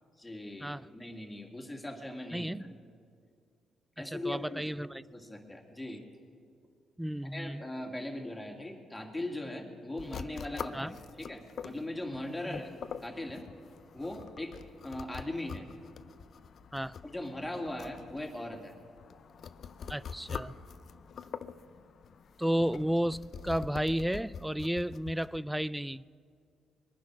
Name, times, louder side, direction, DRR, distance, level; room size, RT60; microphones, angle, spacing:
voice 1, 0.2-2.5 4.0-4.7 5.1-6.0 7.2-12.8 13.0-13.5 13.9-14.6 14.8-15.7 17.0-18.7, left 1 dB, 10° left, 2 dB, 2.3 m, -39 dB
voice 2, 2.3-2.8 4.1-5.0 7.0-7.6 10.7-10.9 12.5-12.6 16.7-17.0 19.9-20.5 22.4-26.0, equal, 5° right, 20 dB, 0.3 m, -32 dB
sound 1, 10.0-25.4, left 6 dB, 55° left, 0.6 m, -45 dB
22.0 x 10.0 x 6.2 m, 2.2 s
cardioid pair, 90°, 0 cm